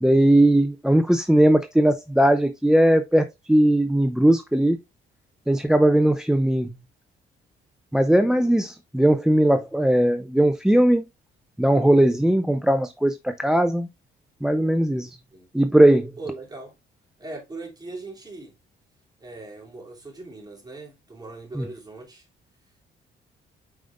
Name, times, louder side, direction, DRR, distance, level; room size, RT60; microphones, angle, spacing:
voice 1, 0.0-4.8 5.5-6.7 7.9-11.0 11.6-13.9 14.4-15.2 15.5-16.1 21.6-21.7, right 1 dB, 5° right, 0.5 m, -19 dB
voice 2, 16.2-16.7 17.2-18.5 19.2-22.3, right 3 dB, 20° right, 3.0 m, -39 dB
7.8 x 5.0 x 2.5 m
cardioid pair, 90°, 20 cm